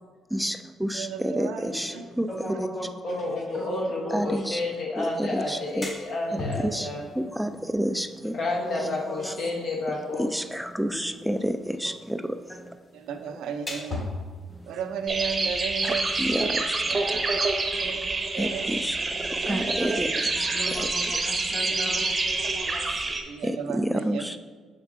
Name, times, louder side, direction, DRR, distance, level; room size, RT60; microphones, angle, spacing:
voice 1, 0.3-2.3 2.6-2.7 3.1-3.2 4.1-4.6 5.0-5.9 6.3-8.4 8.8-8.9 9.2-9.3 10.2-12.8 13.1-13.4 14.5-15.0 15.8-17.4 17.8-18.1 18.4-20.9 23.4-24.4, equal, ahead, 9 dB, 0.3 m, -30 dB
voice 2, 0.9-2.0 12.9-14.1 14.7-16.0 16.9-17.2 17.6-18.7 19.4-20.0 23.3-24.2, right 7 dB, 85° right, 6 dB, 0.5 m, -34 dB
voice 3, 2.3-2.9 3.5-4.3 8.6-9.3 17.1-17.2 17.8-18.0 20.5-23.2, equal, 20° left, -1 dB, 1.5 m, -38 dB
voice 4, 3.0-7.0 8.3-10.3, left 2 dB, 65° left, -3 dB, 1.1 m, -30 dB
sound 1, 5.5-16.7, left 3 dB, 40° left, 1.6 m, -41 dB
sound 2, 15.1-23.2, right 3 dB, 25° right, 0.7 m, -27 dB
6.4 x 4.5 x 3.6 m, 1.5 s
cardioid pair, 90°, 0 cm